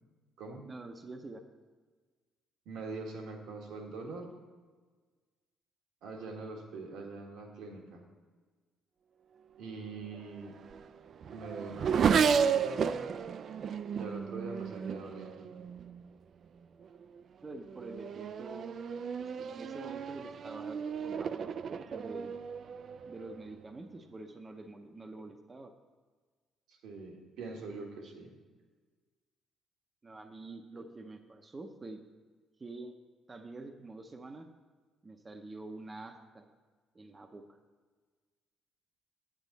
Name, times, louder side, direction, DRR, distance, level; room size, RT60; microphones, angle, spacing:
voice 1, 0.6-1.4 17.4-18.8 19.2-22.3 23.1-25.7 30.0-32.0 32.6-32.9 33.3-34.5 35.0-36.4 36.9-37.6, right 2 dB, 25° right, 5 dB, 0.7 m, -46 dB
voice 2, 2.6-4.3 6.0-8.0 9.6-10.5 11.3-13.0 13.9-15.5 18.1-18.3 26.7-28.3 30.7-30.8, right 3 dB, 80° right, 1 dB, 1.6 m, -43 dB
Race car auto racing / Accelerating revving vroom, 10.1-16.0 16.8-17.2 17.6-23.5, right 6 dB, 50° right, 0.3 m, -33 dB
9.1 x 8.6 x 4.0 m, 1.4 s
cardioid pair, 115°, 0 cm